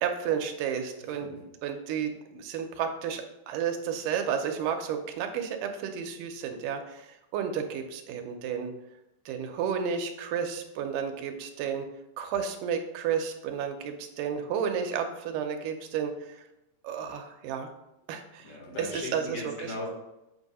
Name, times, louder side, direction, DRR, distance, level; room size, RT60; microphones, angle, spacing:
voice 1, 0.0-1.3 1.6-8.7 9.3-11.9 12.2-16.4 16.8-17.7 18.1-18.5 18.9-19.7, right 7 dB, 90° right, 5 dB, 2.3 m, -32 dB
voice 2, 1.0-1.4 18.4-19.9, left 2 dB, 55° left, -3 dB, 2.5 m, -38 dB
7.8 x 2.7 x 5.3 m, 0.92 s
omnidirectional pair, 3.7 m